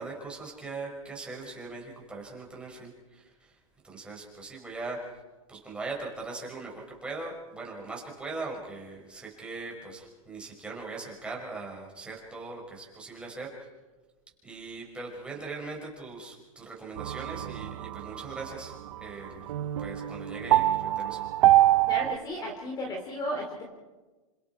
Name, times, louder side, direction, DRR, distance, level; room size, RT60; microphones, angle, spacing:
voice 1, 0.0-3.6 3.8-5.2 5.5-13.7 14.4-19.5 19.8-21.2, right 3 dB, 5° right, -2 dB, 5.6 m, -40 dB
sound 1, 17.0-22.2, right 14 dB, 60° right, 0.9 m, -25 dB
voice 2, 21.9-23.6, equal, 20° left, 2 dB, 3.6 m, -34 dB
28.0 x 26.5 x 4.7 m, 1.3 s
supercardioid pair, 155°, 18 cm